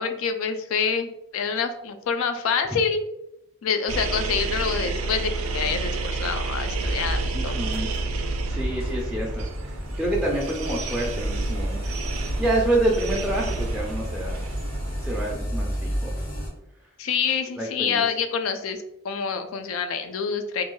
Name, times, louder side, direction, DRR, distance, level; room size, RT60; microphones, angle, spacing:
voice 1, 0.0-3.0 3.6-7.7 17.0-20.6, left 6 dB, 80° left, 8 dB, 0.3 m, -27 dB
sound 1, 3.9-15.4, right 3 dB, 90° right, 0.4 m, -30 dB
sound 2, 6.6-16.5, equal, 40° left, 0.7 m, -31 dB
voice 2, 7.3-7.9 8.5-9.5 10.0-11.8 12.4-14.4 15.0-16.1 17.6-18.0, right 1 dB, 5° right, -4 dB, 0.3 m, -27 dB
2.5 x 2.2 x 3.0 m, 0.84 s
head